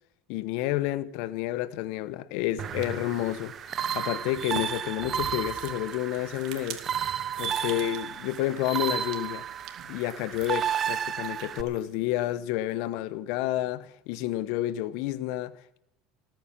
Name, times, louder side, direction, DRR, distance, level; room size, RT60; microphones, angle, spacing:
voice 1, 0.3-3.5 3.9-6.8 7.4-9.4 9.9-15.8, left 14 dB, 70° left, 0.9 m, -30 dB
sound 1, 2.6-11.6, right 9 dB, 40° right, 0.8 m, -33 dB
sound 2, 2.6-12.3, right 9 dB, 60° right, 2.4 m, -48 dB
18.5 x 9.2 x 7.5 m
hypercardioid pair, 90°, 0 cm